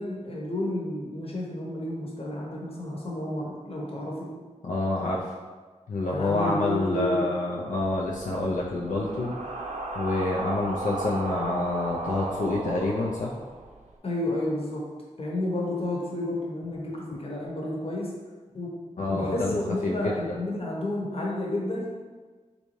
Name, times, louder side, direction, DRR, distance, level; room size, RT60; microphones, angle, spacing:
voice 1, 0.0-4.3 6.1-7.3 14.0-14.8 15.2-18.1 18.5-18.8 19.1-21.9, left 1 dB, 50° left, -3 dB, 0.9 m, -31 dB
voice 2, 4.6-5.3 5.9-9.3 9.9-13.3 19.0-20.4, left 2 dB, 85° left, -4 dB, 0.4 m, -27 dB
sound 1, 7.8-13.9, right 2 dB, 65° right, 0.5 m, -35 dB
3.3 x 2.7 x 3.0 m, 1.4 s
wide cardioid pair, 55°, 13 cm